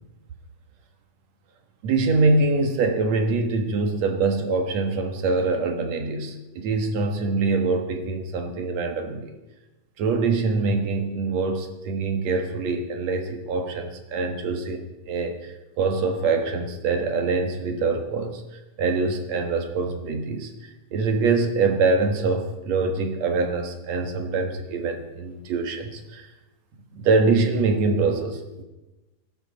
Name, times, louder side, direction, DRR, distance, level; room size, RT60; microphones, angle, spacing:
voice 1, 1.8-9.3 10.0-18.4 18.8-20.5 20.9-26.3 26.9-28.6, right 3 dB, 60° right, 5 dB, 2.4 m, -24 dB
21.5 x 11.5 x 4.0 m, 1.1 s
omnidirectional pair, 3.9 m